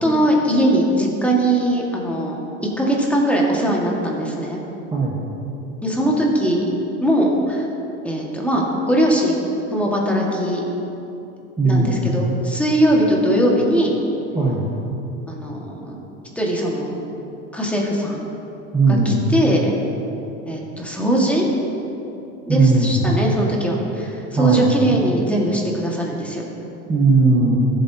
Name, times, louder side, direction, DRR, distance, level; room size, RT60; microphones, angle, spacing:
voice 1, 0.0-2.4 2.8-4.6 5.8-6.7 7.0-7.7 8.0-9.4 9.7-10.6 11.6-13.9 15.3-16.0 16.3-17.0 17.5-18.2 18.9-19.7 20.5-21.5 22.5-26.4, right 1 dB, 5° left, -3 dB, 1.7 m, -20 dB
voice 2, 11.6-12.1 14.3-14.7 18.7-19.2 22.5-23.0 24.3-24.7 26.9-27.6, right 3 dB, 15° right, -5 dB, 1.2 m, -17 dB
14.5 x 7.8 x 2.8 m, 2.9 s
supercardioid pair, 110°, 36 cm